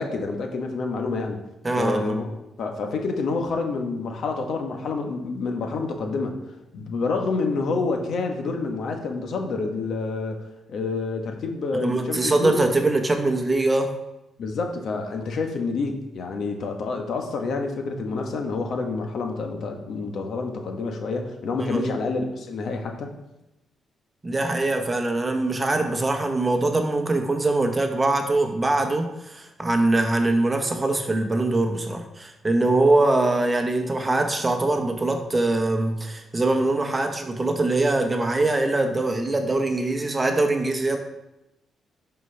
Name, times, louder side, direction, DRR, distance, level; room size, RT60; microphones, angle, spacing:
voice 1, 0.0-1.4 1.7-2.3 2.6-6.4 6.7-10.4 10.7-12.6 14.4-23.1, left 3 dB, 70° left, 4 dB, 1.1 m, -28 dB
voice 2, 1.6-2.2 11.7-13.9 21.7-21.9 24.2-41.0, right 2 dB, 25° right, 5 dB, 1.0 m, -23 dB
11.0 x 4.5 x 3.3 m, 0.93 s
cardioid pair, 85°, 0 cm